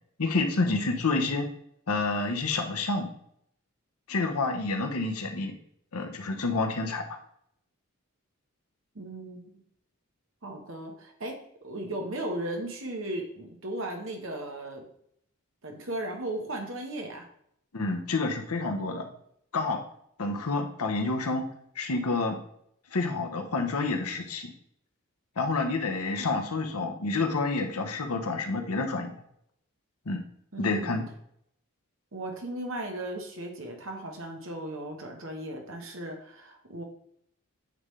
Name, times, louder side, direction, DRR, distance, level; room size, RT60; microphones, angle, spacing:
voice 1, 0.2-1.5 1.9-3.1 4.1-5.6 5.9-7.2 17.7-19.1 19.5-19.8 20.2-21.5 21.8-22.4 22.9-24.5 25.4-29.1 30.1-30.2 30.6-31.1, left 3 dB, 90° left, 5 dB, 0.9 m, -28 dB
voice 2, 8.9-9.4 10.4-14.8 15.6-17.3 30.5-31.0 32.1-36.8, right 1 dB, 65° right, 2 dB, 1.2 m, -36 dB
8.8 x 3.7 x 3.2 m, 0.70 s
head